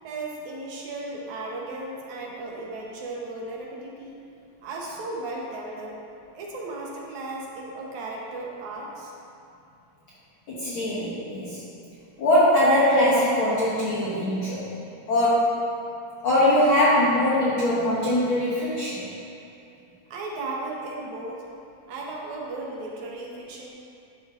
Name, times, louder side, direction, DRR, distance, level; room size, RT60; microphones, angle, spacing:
voice 1, 0.0-4.2 4.6-6.0 6.3-9.1 20.1-21.4 21.9-23.7, right 2 dB, 75° right, -2 dB, 2.2 m, -35 dB
voice 2, 10.5-11.6 12.2-14.7 15.1-15.7 16.2-19.0, left 1 dB, 65° left, -9 dB, 1.3 m, -21 dB
11.5 x 5.6 x 2.4 m, 2.6 s
omnidirectional pair, 3.5 m